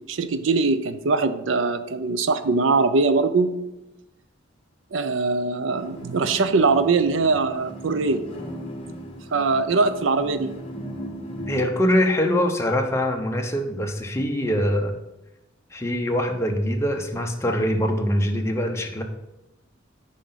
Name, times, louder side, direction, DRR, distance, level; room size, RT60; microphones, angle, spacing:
voice 1, 0.1-3.5 4.9-8.2 9.3-10.5, right 4 dB, 75° right, 11 dB, 0.5 m, -22 dB
sound 1, 5.8-11.7, equal, 30° left, 1.4 m, -37 dB
voice 2, 11.5-14.9 15.7-19.0, equal, 15° left, 3 dB, 0.8 m, -23 dB
8.2 x 5.3 x 4.0 m, 0.97 s
head